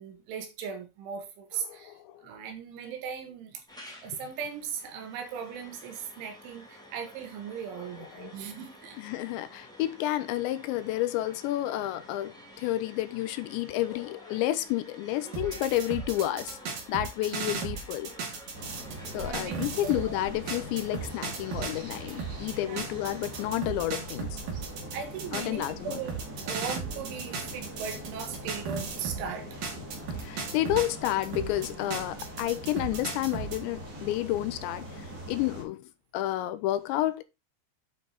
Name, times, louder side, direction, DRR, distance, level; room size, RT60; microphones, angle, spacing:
voice 1, 0.0-2.0 2.2-3.6 4.0-9.0 17.3-17.4 19.1-20.2 22.6-22.9 24.9-29.5, right 7 dB, 80° right, 4.1 m, -38 dB
voice 2, 1.7-2.2 7.8-8.4 9.0-16.6 16.9-18.1 19.1-24.4 25.3-26.0 30.1-37.2, left 14 dB, 80° left, 2.8 m, -31 dB
sound 1, 3.7-23.6, equal, ahead, 1.2 m, -51 dB
sound 2, 15.3-20.1 20.5-29.3 29.6-33.6, right 5 dB, 55° right, 3.5 m, -36 dB
sound 3, 18.5-35.6, equal, 35° right, 1.5 m, -42 dB
9.1 x 5.8 x 4.0 m
omnidirectional pair, 5.4 m